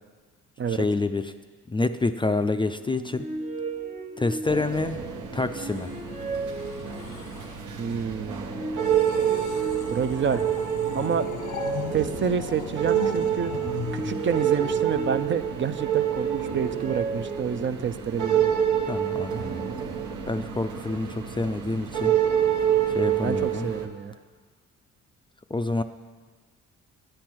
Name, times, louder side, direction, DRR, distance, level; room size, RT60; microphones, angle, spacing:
voice 1, 0.7-1.3 1.7-3.3 4.2-5.0 5.3-5.9 18.9-19.4 20.3-22.1 22.9-23.7 25.5-25.8, left 3 dB, 15° left, 9 dB, 0.4 m, -27 dB
sound 1, 2.8-4.9 5.4-7.5 8.1-10.3 10.8-12.8 13.5-15.6 16.1-18.1, right 3 dB, 25° right, 1.2 m, -36 dB
sound 2, 4.5-23.9, right 9 dB, 75° right, 1.2 m, -28 dB
sound 3, 5.6-7.7 8.8-15.2 16.1-16.4, left 7 dB, 80° left, 0.8 m, -39 dB
voice 2, 7.8-8.6 9.9-10.4 10.9-11.3 11.9-13.5 13.9-18.5 23.0-24.1, right 7 dB, 40° right, 11 dB, 0.5 m, -28 dB
10.0 x 8.7 x 6.1 m, 1.4 s
cardioid pair, 90°, 30 cm